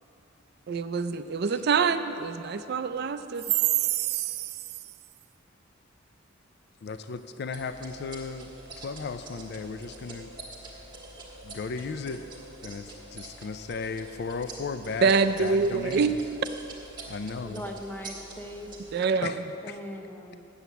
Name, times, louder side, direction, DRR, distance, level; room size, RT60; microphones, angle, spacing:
voice 1, 0.7-4.5 15.0-16.2 18.9-19.3, right 6 dB, 55° right, 10 dB, 0.4 m, -25 dB
voice 2, 6.8-10.3 11.4-12.2 12.6-16.2 17.1-17.7 19.2-19.8, left 4 dB, 55° left, 10 dB, 0.4 m, -36 dB
sound 1, 7.5-18.9, right 2 dB, 25° right, 1.5 m, -45 dB
voice 3, 17.4-18.7 19.6-20.4, equal, 10° left, 3 dB, 0.7 m, -40 dB
7.8 x 7.0 x 8.1 m, 2.7 s
head